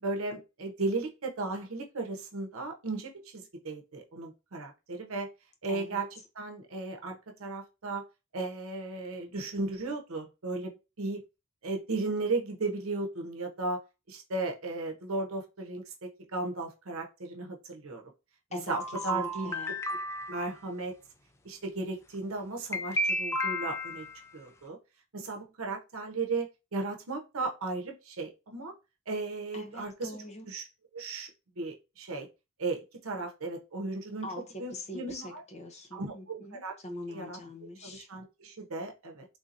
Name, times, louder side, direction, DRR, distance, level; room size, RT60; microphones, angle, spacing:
voice 1, 0.0-5.3 5.6-8.0 8.3-11.2 11.6-13.8 14.1-18.0 18.5-19.6 20.3-20.9 21.4-24.1 24.3-24.8 25.1-28.7 29.1-30.2 30.5-30.7 30.9-31.3 31.6-32.3 32.6-34.3 34.6-35.4 35.9-36.7 37.1-37.4 37.8-39.3, right 3 dB, 70° right, 3 dB, 0.8 m, -35 dB
voice 2, 5.7-6.0 18.5-19.8 29.5-30.5 34.2-38.1, left 2 dB, 30° left, 5 dB, 0.7 m, -43 dB
sound 1, 18.7-20.5 22.7-24.2, equal, 15° left, 0.3 m, -33 dB
3.7 x 2.7 x 2.5 m, 0.27 s
head